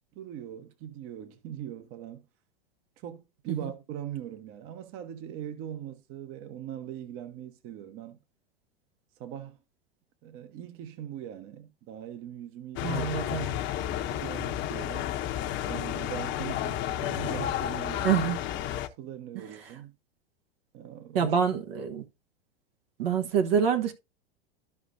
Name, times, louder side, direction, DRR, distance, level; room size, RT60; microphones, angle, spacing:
voice 1, 0.1-2.2 3.0-8.2 9.2-9.6 10.2-13.1 13.4-13.6 14.1-15.1 15.7-18.3 18.9-19.9 20.7-21.4 21.9-22.0, right 10 dB, 45° right, 1.1 m, -41 dB
sound 1, 12.8-18.9, left 11 dB, 40° left, 0.9 m, -31 dB
voice 2, 12.8-13.5 18.0-18.4 19.3-19.4 21.1-22.0 23.0-23.9, right 7 dB, 70° right, 1.3 m, -26 dB
13.5 x 5.1 x 2.6 m
hypercardioid pair, 100°, 30 cm